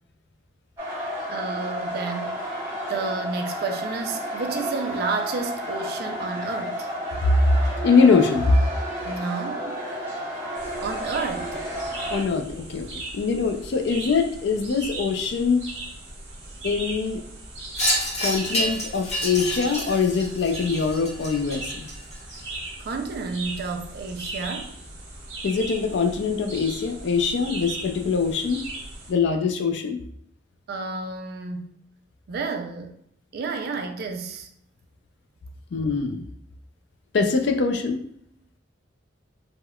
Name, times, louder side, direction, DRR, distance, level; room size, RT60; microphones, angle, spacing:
sound 1, 0.8-12.2, equal, 15° right, 1.0 m, -32 dB
voice 1, 1.3-2.4 2.9-6.9 9.0-9.9 10.8-11.7 22.8-24.8 30.7-31.7 32.3-33.0 33.3-34.5, right 4 dB, 55° right, 6 dB, 0.4 m, -31 dB
voice 2, 7.8-8.5 12.1-12.9 13.1-15.7 16.6-17.2 18.2-21.9 25.4-28.6 29.1-30.0 35.7-36.2 37.1-38.0, left 5 dB, 65° left, 6 dB, 0.4 m, -23 dB
sound 2, 10.5-29.1, right 2 dB, 85° right, 1.1 m, -38 dB
Wind chime, 17.8-22.4, equal, 35° left, 0.8 m, -29 dB
3.5 x 2.1 x 2.2 m, 0.69 s
head